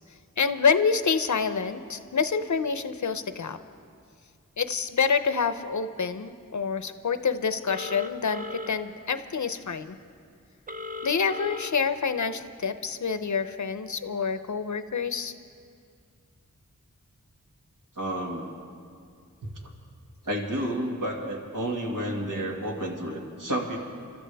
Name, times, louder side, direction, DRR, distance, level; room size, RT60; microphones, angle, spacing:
voice 1, 0.4-3.6 4.6-10.0 11.0-15.3, left 5 dB, 65° left, 11 dB, 0.7 m, -27 dB
Telephone, 7.7-8.7 10.7-11.7, left 2 dB, 25° right, 0.7 m, -36 dB
voice 2, 18.0-18.5 19.4-19.5 20.2-23.8, right 1 dB, 80° right, -1 dB, 2.0 m, -30 dB
29.5 x 13.0 x 3.4 m, 2.3 s
wide cardioid pair, 70°, 32 cm